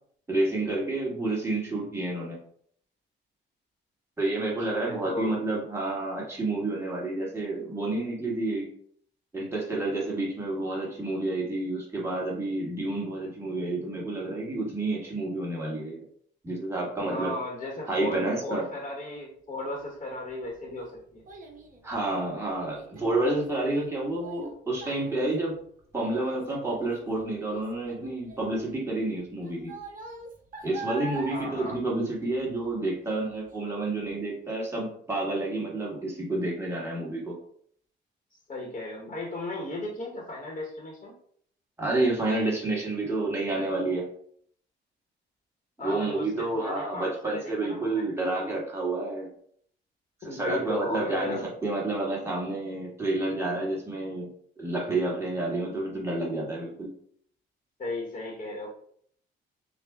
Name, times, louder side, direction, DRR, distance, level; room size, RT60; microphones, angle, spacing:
voice 1, 0.3-2.4 4.2-8.7 9.3-16.0 16.4-17.3 17.9-18.6 21.8-25.6 25.9-29.7 30.6-37.4 41.8-44.1 45.8-49.3 50.2-54.3 54.6-56.9, right 2 dB, 15° right, -4 dB, 1.5 m, -29 dB
voice 2, 4.7-5.4 17.1-21.2 31.3-31.8 38.5-41.1 45.8-48.0 50.2-51.5 57.8-58.7, left 2 dB, 35° left, -2 dB, 1.0 m, -35 dB
Child speech kid speaking, 20.1-32.7 33.1-33.5 34.0-34.1, right 3 dB, 45° right, 0.9 m, -44 dB
6.3 x 2.2 x 2.3 m, 0.63 s
cardioid pair, 90°, 20 cm